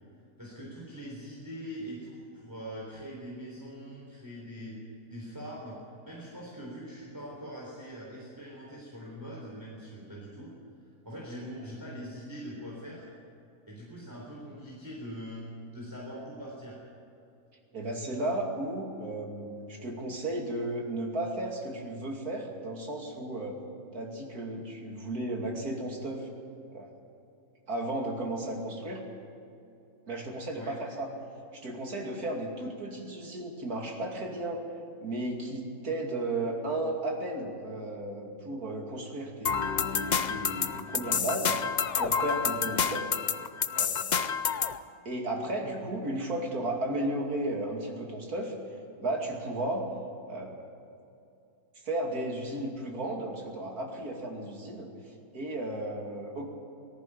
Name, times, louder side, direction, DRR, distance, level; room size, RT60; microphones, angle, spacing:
voice 1, 0.4-4.8 5.1-5.8 6.1-10.5 11.0-13.1 13.7-16.8 30.6-30.8, equal, 10° right, -5 dB, 3.7 m, -42 dB
voice 2, 17.7-23.6 23.9-26.3 26.7-26.9 27.7-29.0 30.1-31.1 31.5-34.7 35.0-41.6 42.0-43.1 43.7-44.0 45.0-48.5 49.0-49.8 50.3-50.6 51.8-54.9 55.3-56.5, right 1 dB, 75° right, 1 dB, 3.1 m, -34 dB
sound 1, 39.5-44.8, left 6 dB, 65° left, 0.4 m, -29 dB
18.5 x 14.5 x 10.0 m, 2.6 s
omnidirectional pair, 1.6 m